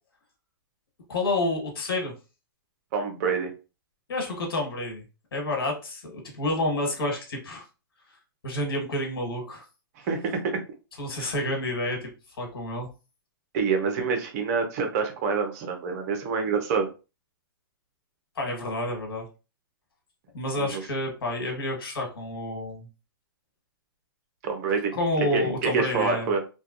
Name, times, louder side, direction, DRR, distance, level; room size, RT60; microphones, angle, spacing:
voice 1, 1.1-2.1 4.1-5.0 5.3-7.6 8.4-9.7 11.0-12.1 12.4-12.9 18.4-19.3 20.3-22.9 25.0-26.3, left 1 dB, 75° left, 2 dB, 1.2 m, -29 dB
voice 2, 2.9-3.5 10.1-10.6 11.2-11.3 13.5-16.9 20.6-20.8 24.4-24.9 25.3-26.4, right 5 dB, 45° right, 5 dB, 0.7 m, -26 dB
2.6 x 2.2 x 2.4 m, 0.31 s
hypercardioid pair, 140°, 12 cm